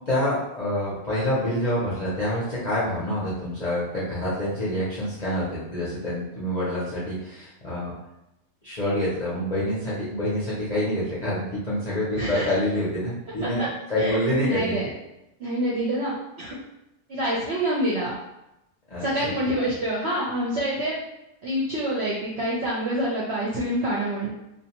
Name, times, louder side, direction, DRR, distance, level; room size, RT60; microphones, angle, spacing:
voice 1, 0.1-7.9 8.6-13.6 13.9-14.7 18.9-19.3, left 1 dB, 45° left, -10 dB, 0.5 m, -27 dB
voice 2, 12.2-12.5 13.6-13.7 14.0-14.9 15.4-16.6 17.1-18.1 19.0-21.0 21.4-24.3, right 1 dB, 60° right, -7 dB, 0.7 m, -27 dB
2.5 x 2.2 x 2.8 m, 0.89 s
omnidirectional pair, 1.6 m